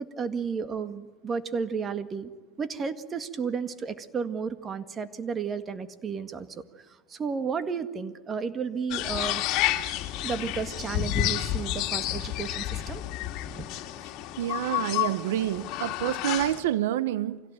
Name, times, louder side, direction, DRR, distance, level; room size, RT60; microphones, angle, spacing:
voice 1, 0.0-2.3 2.6-6.5 6.8-9.4 10.2-13.0 13.5-13.7, right 5 dB, 25° right, 11 dB, 1.8 m, -33 dB
sound 1, 8.9-16.6, left 14 dB, 55° left, 2.4 m, -30 dB
voice 2, 14.4-17.4, right 12 dB, 90° right, 16 dB, 1.1 m, -28 dB
25.5 x 17.0 x 9.1 m, 1.3 s
supercardioid pair, 130°, 0 cm